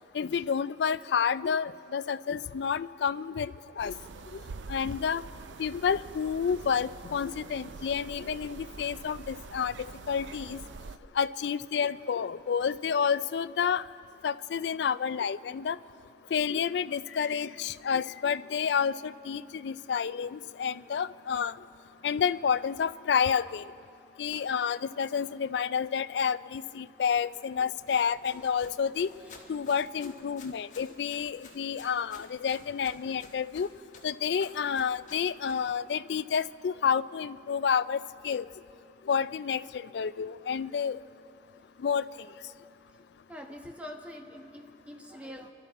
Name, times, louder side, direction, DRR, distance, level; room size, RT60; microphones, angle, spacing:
voice 1, 0.1-3.9 4.3-4.4 4.7-5.3 5.6-10.6 11.1-13.9 14.2-15.8 16.3-21.6 22.0-23.6 24.2-29.1 29.5-33.7 34.0-38.4 39.1-41.0 41.8-42.3, left 7 dB, 70° left, 16 dB, 0.3 m, -29 dB
sound 1, 3.8-11.0, right 4 dB, 85° right, 0.5 m, -45 dB
Run, 27.8-35.7, left 4 dB, 45° left, 1.5 m, -54 dB
voice 2, 29.2-29.5 41.8-42.2 42.6-42.7 43.3-45.5, equal, 5° right, 2 dB, 1.1 m, -46 dB
27.0 x 12.5 x 4.1 m, 2.5 s
head